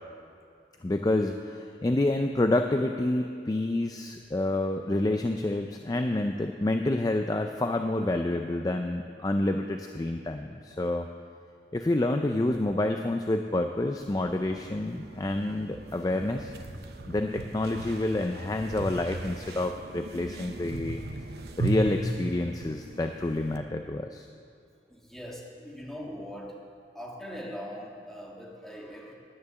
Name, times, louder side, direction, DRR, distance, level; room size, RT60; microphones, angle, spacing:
voice 1, 0.8-11.1 11.7-16.5 17.1-21.0 21.6-24.3, left 2 dB, 20° left, 5 dB, 0.3 m, -28 dB
sound 1, 14.0-23.6, right 2 dB, 60° right, 0.8 m, -37 dB
voice 2, 24.9-26.6 26.9-29.1, equal, ahead, -3 dB, 1.6 m, -41 dB
10.5 x 9.6 x 6.8 m, 2.5 s
head